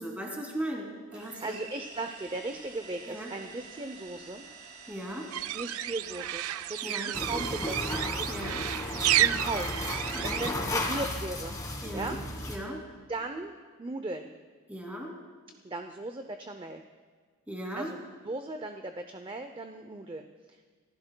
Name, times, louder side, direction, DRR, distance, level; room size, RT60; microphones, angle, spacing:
voice 1, 0.0-1.6 3.1-3.3 4.9-5.3 6.8-7.1 8.3-8.6 10.1-10.4 11.8-12.2 12.5-12.8 14.7-15.1 17.5-17.9, right 1 dB, 10° right, -1 dB, 2.6 m, -37 dB
voice 2, 1.1-4.4 5.5-8.5 8.9-9.8 10.2-11.6 11.9-12.2 12.5-12.7 13.1-13.5 13.8-14.3 15.6-16.8 17.8-20.7, right 2 dB, 25° right, 6 dB, 0.5 m, -38 dB
sound 1, 1.1-7.8, right 4 dB, 40° right, 2.5 m, -49 dB
sound 2, 5.3-10.5, right 13 dB, 75° right, 0.3 m, -31 dB
sound 3, 7.1-12.6, left 1 dB, 15° left, 1.5 m, -34 dB
27.0 x 15.0 x 2.2 m, 1.5 s
head